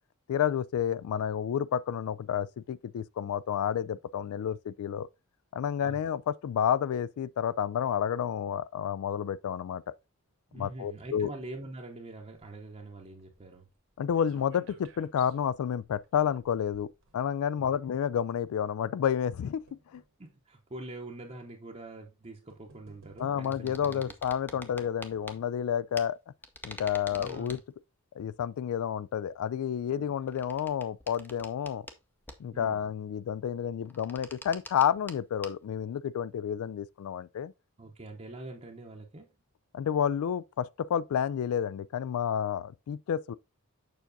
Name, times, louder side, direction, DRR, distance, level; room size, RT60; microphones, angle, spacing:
voice 1, 0.3-5.1 5.5-9.9 10.5-11.3 14.0-16.9 17.1-20.0 23.2-26.2 26.6-27.6 28.2-31.9 32.4-37.5 39.7-43.3, left 8 dB, 75° left, 0.3 m, -30 dB
voice 2, 10.5-13.7 17.6-17.7 20.2-24.0 24.5-24.7 27.1-27.6 29.9-30.0 32.5-32.8 37.8-39.3, right 2 dB, 30° right, 0.7 m, -44 dB
sound 1, 12.3-17.8 18.6-20.2 21.0-21.1 22.1-22.2 22.5-23.7 24.6-25.7 26.1-26.2 26.5-26.6, right 3 dB, 60° right, 1.2 m, -59 dB
sound 2, 23.4-25.4 26.0-26.1 26.4-27.6 30.3-32.0 32.2-32.6 33.8-35.2 35.4-35.5, left 2 dB, 10° left, 0.5 m, -46 dB
6.8 x 5.8 x 2.6 m
head